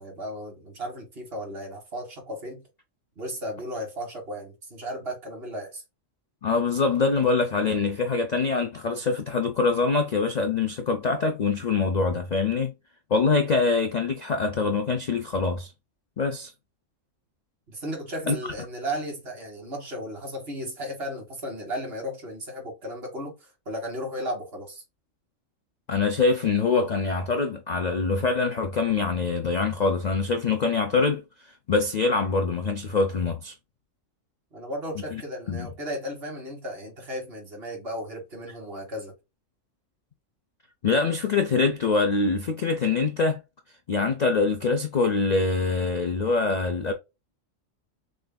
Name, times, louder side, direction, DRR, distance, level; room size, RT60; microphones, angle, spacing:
voice 1, 0.0-2.6 3.2-5.8 17.7-24.8 34.5-39.1, equal, 50° right, 1.8 m, -35 dB
voice 2, 6.4-12.7 13.1-15.7 16.2-16.5 18.3-18.4 25.9-31.2 31.7-33.5 35.1-35.2 35.5-35.7 40.8-43.4 43.9-46.9, left 4 dB, 50° left, 0.5 m, -24 dB
6.3 x 2.6 x 2.2 m
omnidirectional pair, 1.3 m